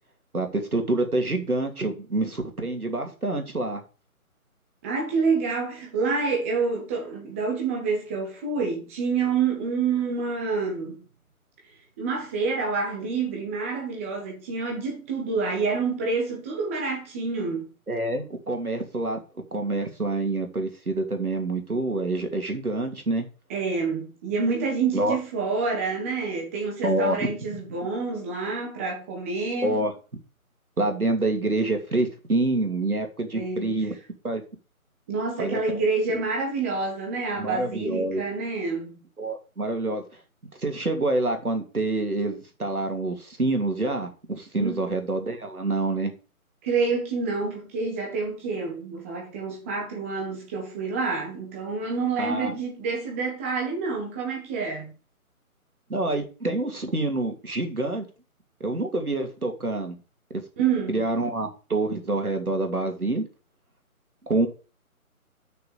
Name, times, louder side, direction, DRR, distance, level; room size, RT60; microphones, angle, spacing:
voice 1, 0.3-3.8 17.9-19.2 19.5-23.3 24.9-25.2 26.8-27.3 29.6-29.9 30.8-33.9 34.2-34.4 35.4-35.8 36.1-36.2 37.3-38.2 39.2-40.0 40.6-44.1 44.4-46.1 52.2-52.5 55.9-58.1 58.6-60.0 60.9-63.2 64.2-64.5, right 2 dB, 75° right, 2.8 m, -27 dB
voice 2, 4.8-11.0 12.0-17.7 23.5-29.9 33.3-33.8 35.1-39.0 44.5-44.8 46.6-54.9 60.6-61.0, right 4 dB, 10° right, 1.3 m, -28 dB
6.8 x 6.2 x 7.1 m
figure-of-eight pair, 150°, 44 cm